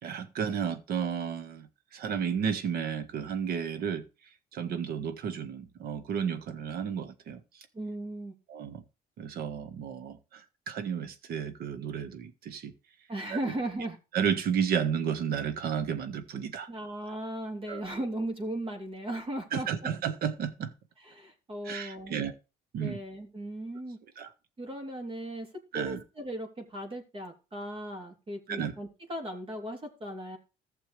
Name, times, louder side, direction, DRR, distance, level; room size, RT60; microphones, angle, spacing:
voice 1, 0.0-1.7 1.9-4.0 4.5-7.4 8.5-8.8 9.2-12.7 13.3-13.5 14.1-16.7 17.7-17.8 19.5-20.7 21.6-22.3 22.7-23.0 24.2-24.3 25.7-26.0 28.5-28.7, right 7 dB, 65° right, 1.5 m, -32 dB
voice 2, 7.7-8.3 13.1-14.0 16.7-19.9 21.0-22.2 22.8-24.0 24.6-25.5 25.7-30.4, right 1 dB, 35° right, 3.2 m, -37 dB
15.0 x 6.9 x 3.4 m
cardioid pair, 110°, 17 cm